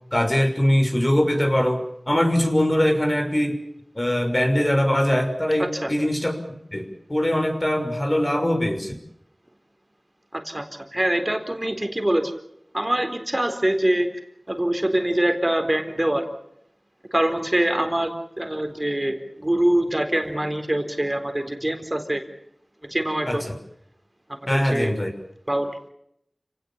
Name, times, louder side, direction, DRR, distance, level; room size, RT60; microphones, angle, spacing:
voice 1, 0.1-3.6 3.9-6.4 6.7-9.0 23.3-23.5 24.5-25.1, equal, 30° left, 4 dB, 6.2 m, -22 dB
voice 2, 10.3-10.6 10.9-12.3 12.7-14.1 14.5-16.2 17.1-18.1 18.4-22.2 22.9-23.4 24.3-24.9 25.5-25.9, right 1 dB, 25° right, 6 dB, 4.1 m, -24 dB
29.5 x 18.5 x 7.4 m, 0.76 s
wide cardioid pair, 50°, 0 cm